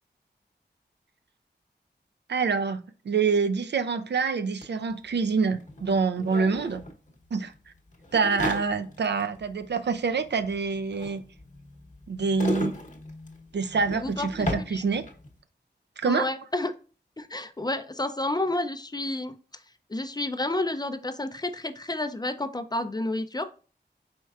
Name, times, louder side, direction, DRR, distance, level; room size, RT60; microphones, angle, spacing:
voice 1, 2.3-2.8 3.1-6.8 7.3-7.5 8.1-11.2 12.1-12.7 13.5-15.0 16.0-16.3, right 5 dB, 70° right, 0.4 m, -26 dB
sound 1, 4.6-4.7 4.9-15.4, left 1 dB, 40° left, 0.9 m, -37 dB
voice 2, 13.9-14.3 14.7-14.8 16.0-16.7 17.2-19.4 19.9-23.5, left 2 dB, 20° left, 0.4 m, -30 dB
4.3 x 4.3 x 2.3 m
wide cardioid pair, 85°, 18 cm